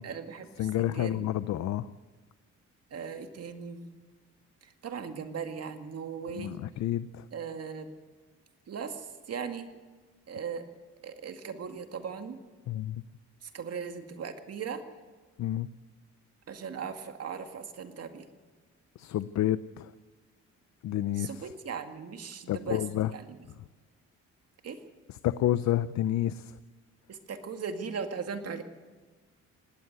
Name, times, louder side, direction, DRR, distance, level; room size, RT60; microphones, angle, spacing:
voice 1, 0.0-1.3 2.9-4.0 4.6-6.6 7.3-7.9 8.7-9.7 10.3-10.7 11.0-12.4 13.4-14.8 16.5-18.3 21.1-22.8 23.1-23.4 24.6-24.8 27.1-28.6, right 6 dB, 55° right, 7 dB, 2.2 m, -38 dB
voice 2, 0.6-1.9 6.3-7.2 12.7-13.0 15.4-15.7 19.0-19.9 20.8-21.4 22.5-23.1 25.1-26.5, left 12 dB, 65° left, 15 dB, 0.6 m, -29 dB
19.5 x 17.5 x 8.1 m, 1.3 s
cardioid pair, 90°, 30 cm